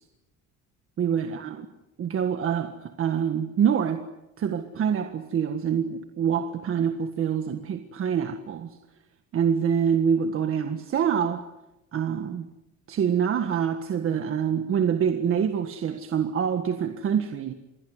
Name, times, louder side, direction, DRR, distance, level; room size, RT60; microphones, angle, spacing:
voice 1, 1.0-1.7 2.0-4.1 4.4-8.8 9.3-11.4 11.9-12.5 12.9-17.5, right 8 dB, 45° right, 1.7 m, -26 dB
28.0 x 21.0 x 8.1 m
cardioid pair, 135°, 30 cm